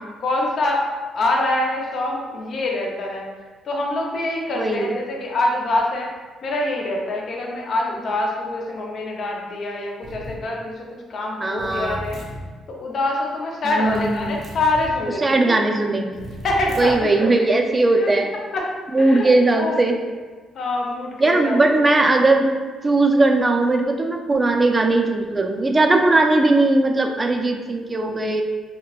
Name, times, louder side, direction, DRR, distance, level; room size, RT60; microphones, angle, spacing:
voice 1, 0.2-3.3 3.6-6.1 6.4-12.2 12.7-15.5 16.4-17.5 17.9-18.1 18.5-18.7 19.0-19.8 20.5-21.8, left 2 dB, 55° left, -1 dB, 0.5 m, -25 dB
voice 2, 4.6-4.9 11.4-12.0 13.7-14.4 15.2-16.3 16.8-18.3 18.9-20.0 21.2-22.5 22.8-28.4, right 2 dB, 25° right, 3 dB, 0.4 m, -18 dB
sound 1, 10.0-10.4 11.6-12.5 13.8-15.0 16.1-17.1, right 1 dB, 75° right, 0.7 m, -36 dB
3.9 x 2.1 x 2.3 m, 1.4 s
cardioid pair, 90°, 0 cm